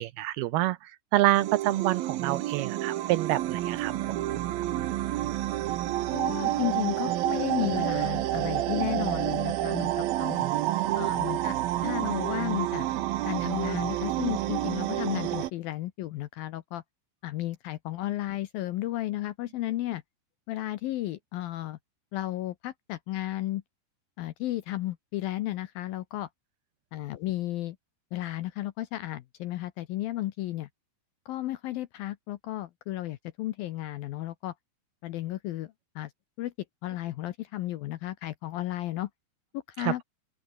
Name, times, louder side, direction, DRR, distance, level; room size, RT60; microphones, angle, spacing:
voice 1, 0.0-4.1 10.4-11.1 39.8-40.0, right 16 dB, 85° right, 2.2 m, -28 dB
sound 1, 1.3-15.5, right 14 dB, 70° right, 2.5 m, -29 dB
voice 2, 6.1-10.4 11.0-12.9 13.2-16.8 17.2-20.0 20.5-21.8 22.1-23.6 24.2-26.3 26.9-27.8 28.1-30.7 31.3-34.5 35.0-36.1 36.4-36.5 36.8-39.1 39.5-40.0, left 15 dB, 80° left, 2.1 m, -33 dB
open air
omnidirectional pair, 5.3 m